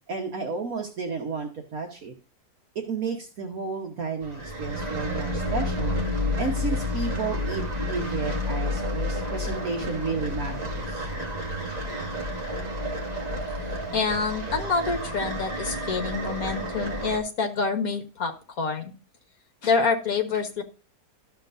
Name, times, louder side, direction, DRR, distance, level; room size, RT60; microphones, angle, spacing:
voice 1, 0.1-2.1 2.7-5.9 6.4-11.0, right 4 dB, 60° right, 2 dB, 1.6 m, -32 dB
sound 1, 4.2-17.2, left 1 dB, 25° right, 1.8 m, -30 dB
voice 2, 13.9-18.9 19.6-20.6, left 4 dB, 60° left, 5 dB, 1.8 m, -27 dB
13.0 x 7.3 x 2.6 m, 0.34 s
omnidirectional pair, 1.7 m